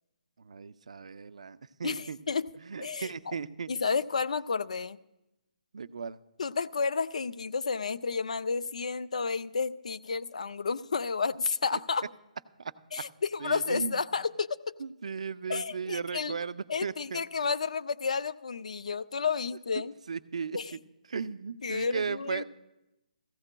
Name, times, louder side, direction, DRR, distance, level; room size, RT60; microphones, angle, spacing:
voice 1, 0.4-2.2 2.7-3.7 5.7-6.2 12.6-13.0 13.4-14.0 14.8-17.2 20.1-20.6 21.1-22.4, right 5 dB, 50° right, 14 dB, 0.4 m, -36 dB
voice 2, 1.8-2.5 2.8-3.3 3.7-5.0 6.4-12.1 12.9-14.7 15.5-16.4 16.7-19.9 20.5-20.7 21.6-22.4, left 5 dB, 55° left, 15 dB, 0.4 m, -31 dB
17.0 x 15.0 x 2.2 m, 0.94 s
hypercardioid pair, 180°, 4 cm